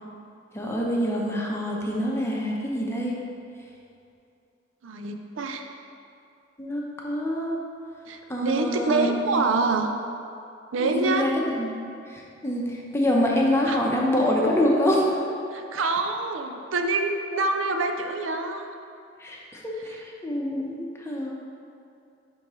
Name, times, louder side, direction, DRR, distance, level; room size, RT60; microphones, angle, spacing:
voice 1, 0.5-3.2 6.6-7.6 8.3-9.4 10.8-11.3 11.6-11.7 12.1-15.1 19.2-21.3, equal, 15° left, -3 dB, 0.8 m, -26 dB
voice 2, 4.8-5.7 8.1-9.9 10.7-11.3 13.7-13.8 15.5-18.7 19.8-20.0, right 3 dB, 85° right, 5 dB, 0.5 m, -26 dB
10.5 x 3.8 x 3.1 m, 2.6 s
head